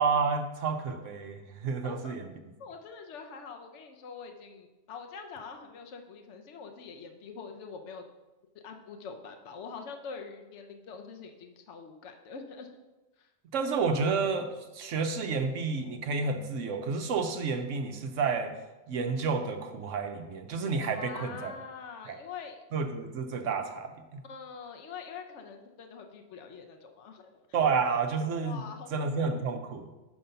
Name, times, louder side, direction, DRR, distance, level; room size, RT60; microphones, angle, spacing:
voice 1, 0.0-2.2 13.5-14.5 14.7-18.5 18.9-21.5 22.1-22.2 22.7-23.9 27.5-28.6 28.9-29.9, right 5 dB, 75° right, 6 dB, 1.1 m, -30 dB
voice 2, 1.8-2.2 2.6-8.0 8.5-12.7 13.2-13.3 20.9-22.6 24.3-27.3 27.6-27.7 28.4-29.4, left 5 dB, 70° left, 4 dB, 1.1 m, -44 dB
7.1 x 5.3 x 5.6 m, 1.1 s
omnidirectional pair, 1.3 m